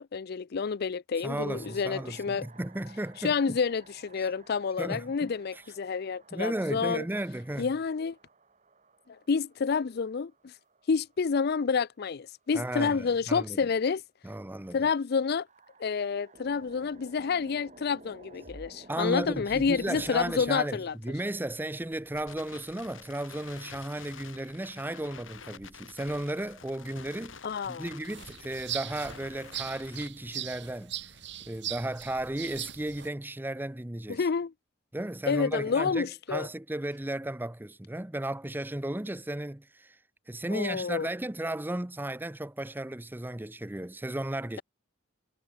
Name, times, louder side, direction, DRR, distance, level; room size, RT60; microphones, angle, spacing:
voice 1, 0.0-2.5 3.2-7.0 7.6-8.2 9.1-10.5 10.9-14.0 14.7-15.5 15.8-20.9 27.4-27.9 34.1-34.5 35.3-36.5 40.5-41.1, left 5 dB, 55° left, 0.5 m, -29 dB
voice 2, 1.2-3.6 4.2-4.3 4.8-5.6 6.3-7.7 12.5-13.6 14.2-14.9 18.9-27.4 27.7-30.9 31.4-34.2 34.9-40.0 40.3-44.6, right 1 dB, 10° right, 0.7 m, -35 dB
sound 1, 1.4-12.3 15.4-20.5, right 2 dB, 40° right, 3.5 m, -54 dB
Crackle, 20.8-30.1, left 5 dB, 80° left, 7.6 m, -49 dB
sound 2, 28.1-33.1, right 11 dB, 65° right, 3.5 m, -40 dB
head